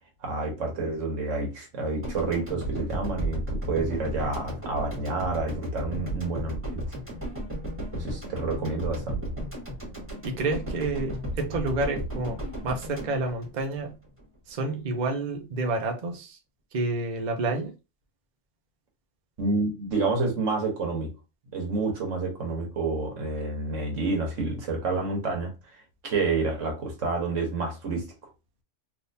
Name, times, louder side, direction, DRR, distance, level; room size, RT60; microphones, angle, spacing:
voice 1, 0.2-6.8 7.9-9.2 19.4-21.1 21.5-25.5 26.0-28.1, right 3 dB, 85° right, 1.5 m, -29 dB
sound 1, 2.0-14.2, right 1 dB, 10° right, 1.5 m, -35 dB
voice 2, 10.2-13.9 14.5-16.4 16.7-17.7, right 2 dB, 45° right, 0.8 m, -29 dB
3.6 x 2.7 x 2.7 m
omnidirectional pair, 1.3 m